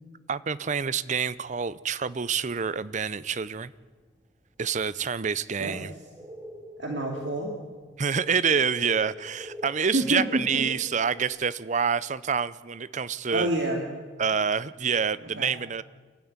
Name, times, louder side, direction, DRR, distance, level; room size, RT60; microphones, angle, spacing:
voice 1, 0.3-3.7 4.6-5.9 8.0-13.5 14.2-15.8, right 6 dB, 40° right, 17 dB, 0.6 m, -27 dB
sound 1, 4.4-4.5 5.5-11.3, equal, 20° right, 3.0 m, -44 dB
voice 2, 6.8-7.5 9.9-10.6 13.3-13.8 15.4-15.5, right 1 dB, 65° right, 1 dB, 2.4 m, -28 dB
28.0 x 12.5 x 9.6 m, 1.5 s
head